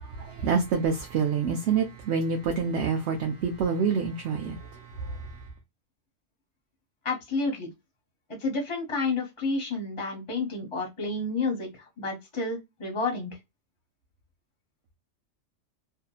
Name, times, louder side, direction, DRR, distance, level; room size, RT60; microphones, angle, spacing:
voice 1, 0.2-4.6, right 6 dB, 65° right, 0.8 m, -26 dB
voice 2, 7.0-7.7 8.4-11.7 12.0-13.3, left 3 dB, 30° left, 0.8 m, -30 dB
2.7 x 2.3 x 2.3 m
omnidirectional pair, 1.3 m